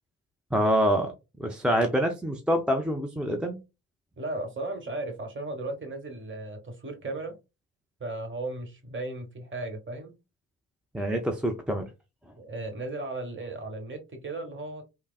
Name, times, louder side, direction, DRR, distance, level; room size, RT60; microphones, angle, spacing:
voice 1, 0.5-1.1 1.4-3.6 10.9-11.8, equal, ahead, 0.5 m, -26 dB
voice 2, 4.2-7.3 8.0-10.1 12.3-14.9, right 2 dB, 25° right, 1.2 m, -36 dB
3.4 x 2.1 x 2.4 m
figure-of-eight pair, 45°, 43 cm